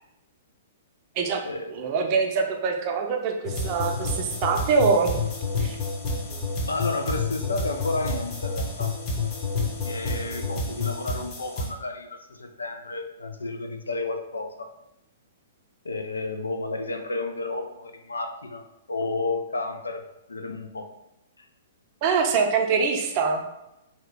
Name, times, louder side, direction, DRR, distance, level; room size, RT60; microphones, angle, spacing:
voice 1, 1.7-5.2 5.6-5.8 22.0-23.5, right 5 dB, 40° right, 3 dB, 0.5 m, -24 dB
sound 1, 3.4-11.7, left 3 dB, 30° left, 0.8 m, -29 dB
voice 2, 6.6-8.9 9.8-14.7 15.8-20.0 20.3-20.9 21.4-21.5, left 2 dB, 85° left, 6 dB, 0.4 m, -31 dB
2.9 x 2.3 x 3.4 m, 0.88 s
figure-of-eight pair, 115°, 0 cm